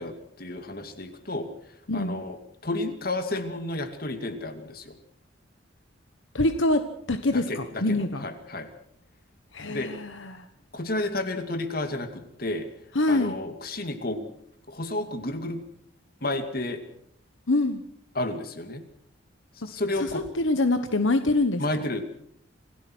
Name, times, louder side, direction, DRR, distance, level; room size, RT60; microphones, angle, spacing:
voice 1, 0.0-1.5 1.9-2.4 2.6-5.0 7.3-8.7 9.7-9.9 10.7-12.7 13.1-14.3 14.7-15.6 16.2-16.8 18.1-18.8 19.7-20.3 21.6-22.0, left 2 dB, 45° left, 8 dB, 2.4 m, -31 dB
voice 2, 1.9-2.2 6.3-6.8 7.1-8.2 9.5-10.4 12.9-13.3 17.5-17.8 20.0-21.6, left 2 dB, 75° left, 9 dB, 1.3 m, -25 dB
27.5 x 17.0 x 6.2 m, 0.71 s
head